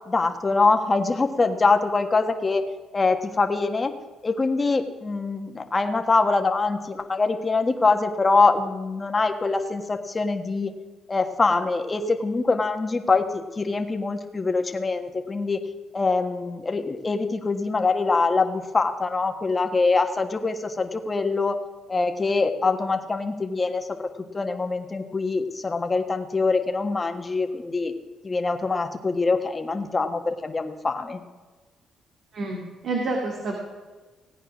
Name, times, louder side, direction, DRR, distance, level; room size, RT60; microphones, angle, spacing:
voice 1, 0.1-2.6 2.9-3.9 4.2-10.7 11.1-15.6 15.9-21.6 21.9-24.1 24.3-27.9 28.2-31.2, left 3 dB, 25° left, 6 dB, 1.4 m, -24 dB
voice 2, 32.3-33.6, right 2 dB, 60° right, 0 dB, 2.1 m, -28 dB
17.0 x 9.0 x 6.1 m, 1.3 s
cardioid pair, 90°, 0 cm